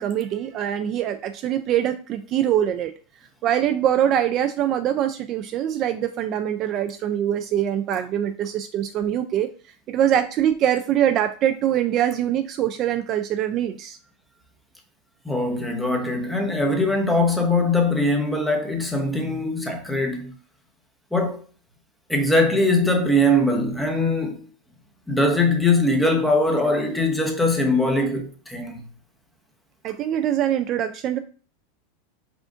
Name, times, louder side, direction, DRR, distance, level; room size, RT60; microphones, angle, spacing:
voice 1, 0.0-2.9 3.4-9.5 9.9-14.0 29.8-31.2, right 10 dB, 40° right, 0.3 m, -23 dB
voice 2, 15.2-20.3 21.1-21.4 22.1-24.4 25.1-28.9, left 1 dB, 5° left, 0.8 m, -21 dB
5.0 x 2.4 x 3.7 m
supercardioid pair, 130°, 0 cm